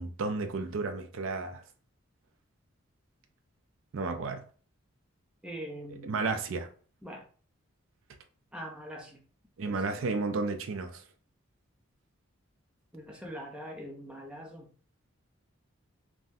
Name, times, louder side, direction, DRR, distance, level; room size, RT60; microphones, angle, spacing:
voice 1, 0.0-1.6 3.9-4.4 6.0-6.7 9.6-11.0, right 3 dB, 65° right, 0.4 m, -32 dB
voice 2, 5.4-6.2 7.0-7.3 8.5-9.2 9.6-10.0 12.9-14.7, equal, 5° right, 0.4 m, -43 dB
3.5 x 2.1 x 2.6 m
head